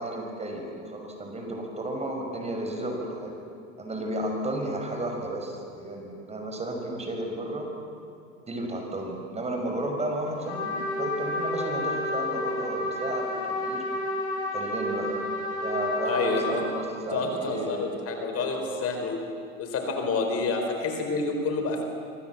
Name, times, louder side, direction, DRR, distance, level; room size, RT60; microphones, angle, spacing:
voice 1, 0.0-3.3 3.8-7.7 8.5-13.8 14.5-15.2 15.6-17.9 18.3-18.8, right 1 dB, 15° right, 2 dB, 5.6 m, -33 dB
Trumpet, 10.5-16.7, left 2 dB, 60° left, 7.1 m, -30 dB
voice 2, 16.0-16.6 17.1-19.2 19.6-21.8, left 3 dB, 35° left, 4 dB, 4.4 m, -28 dB
26.5 x 25.5 x 7.4 m, 2.4 s
hypercardioid pair, 105°, 42 cm